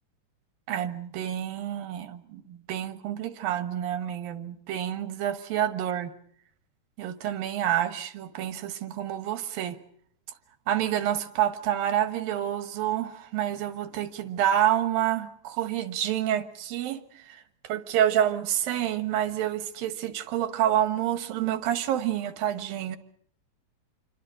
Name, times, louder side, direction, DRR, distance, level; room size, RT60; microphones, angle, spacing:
voice 1, 0.7-6.1 7.0-9.8 10.7-23.0, right 11 dB, 90° right, 11 dB, 3.2 m, -28 dB
28.0 x 24.5 x 5.2 m, 0.64 s
omnidirectional pair, 4.0 m